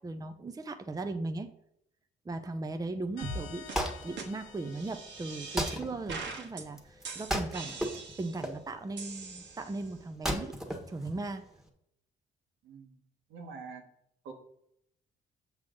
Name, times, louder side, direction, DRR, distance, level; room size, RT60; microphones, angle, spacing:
voice 1, 0.0-1.5 2.3-3.7 4.0-7.8 8.2-11.5, right 2 dB, 20° right, 8 dB, 0.6 m, -38 dB
sound 1, 3.2-6.6, left 7 dB, 85° left, 1.2 m, -51 dB
sound 2, 3.2-3.4 3.7-3.8 4.2-4.3 4.7-5.8 6.1-6.6 7.0-8.4 9.0-9.9, right 3 dB, 65° right, 1.4 m, -41 dB
Wood, 3.3-11.7, equal, ahead, 1.4 m, -37 dB
voice 2, 12.6-12.9 13.3-13.8 14.2-14.3, right 5 dB, 85° right, 2 dB, 1.6 m, -45 dB
7.6 x 5.7 x 3.8 m, 0.73 s
cardioid pair, 90°, 20 cm